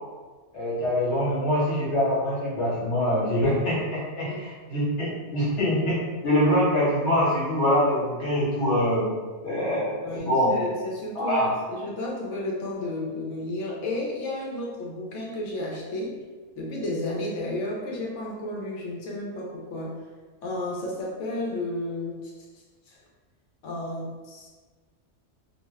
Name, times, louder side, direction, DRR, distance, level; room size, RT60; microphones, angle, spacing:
voice 1, 0.5-6.0 6.2-9.1 9.4-10.6 11.1-11.5, equal, 70° left, -7 dB, 1.3 m, -24 dB
voice 2, 10.0-16.1 16.6-20.0 20.4-22.3 22.9-23.0 23.6-24.5, left 1 dB, 90° left, -2 dB, 1.0 m, -32 dB
2.6 x 2.1 x 3.5 m, 1.4 s
omnidirectional pair, 1.2 m